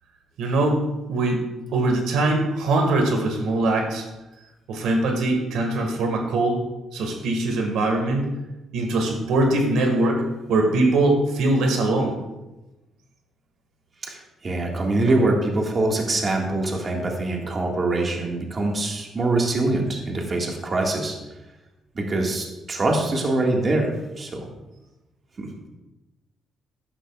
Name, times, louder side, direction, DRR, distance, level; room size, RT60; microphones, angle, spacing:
voice 1, 0.4-0.8 1.1-4.0 4.7-6.6 6.9-8.3 8.7-10.2 10.5-12.2, right 2 dB, 85° right, 3 dB, 1.7 m, -22 dB
voice 2, 14.0-21.2 22.0-24.5 25.4-25.7, right 2 dB, 35° right, 0 dB, 1.8 m, -24 dB
13.0 x 10.5 x 2.4 m, 1.0 s
cardioid pair, 115°, 0 cm